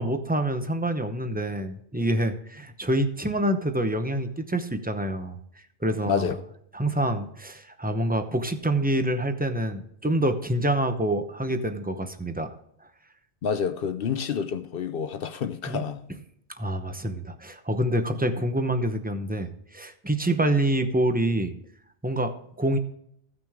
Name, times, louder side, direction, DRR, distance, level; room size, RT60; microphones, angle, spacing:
voice 1, 0.0-5.4 5.8-6.3 6.7-12.5 15.7-15.8 16.6-21.5 22.0-22.8, right 1 dB, 10° right, 0.6 m, -26 dB
voice 2, 6.1-6.4 13.4-16.0 20.4-20.5, left 7 dB, 60° left, 0.8 m, -28 dB
15.5 x 6.0 x 3.6 m
omnidirectional pair, 1.1 m